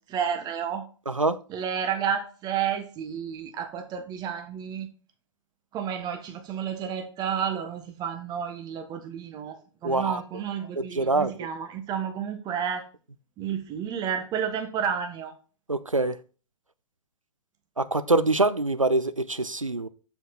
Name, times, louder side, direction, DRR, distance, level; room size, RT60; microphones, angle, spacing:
voice 1, 0.1-0.8 1.5-4.9 5.7-12.8 13.4-15.3, right 8 dB, 25° right, 6 dB, 1.4 m, -31 dB
voice 2, 1.1-1.4 9.8-10.2 10.8-11.3 15.7-16.1 17.8-19.9, right 2 dB, 90° right, 14 dB, 0.6 m, -24 dB
7.1 x 6.2 x 4.4 m, 0.38 s
figure-of-eight pair, 105°, 17 cm